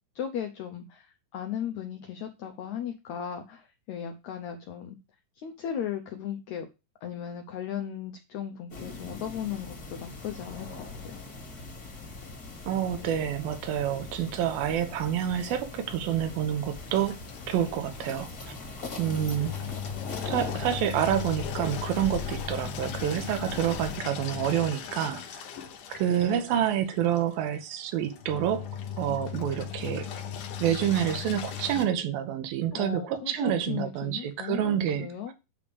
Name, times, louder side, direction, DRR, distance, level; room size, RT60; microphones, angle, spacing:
voice 1, 0.1-5.0 5.4-6.7 7.0-11.2 32.7-35.3, left 8 dB, 85° left, 1.6 m, -36 dB
sound 1, 8.7-24.0, left 3 dB, 35° left, 1.8 m, -41 dB
voice 2, 12.7-17.2 17.5-18.5 19.0-19.5 20.3-25.2 25.9-28.7 29.0-30.1 30.6-35.3, right 10 dB, 75° right, 2.9 m, -28 dB
Engine, 16.7-31.9, left 8 dB, 70° left, 2.3 m, -38 dB
9.0 x 3.4 x 6.8 m
omnidirectional pair, 4.3 m